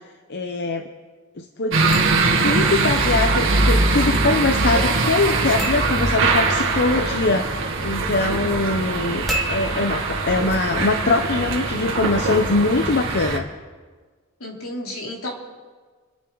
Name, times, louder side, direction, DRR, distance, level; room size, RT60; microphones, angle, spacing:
voice 1, 0.3-0.8 1.4-1.8 2.4-13.5, left 3 dB, 50° left, 6 dB, 0.8 m, -22 dB
sound 1, 1.7-13.4, right 3 dB, 60° right, 1.9 m, -22 dB
sound 2, 9.1-11.5, right 1 dB, ahead, 2.4 m, -36 dB
voice 2, 14.4-15.3, left 1 dB, 75° left, -2 dB, 3.3 m, -32 dB
29.5 x 10.5 x 3.9 m, 1.5 s
head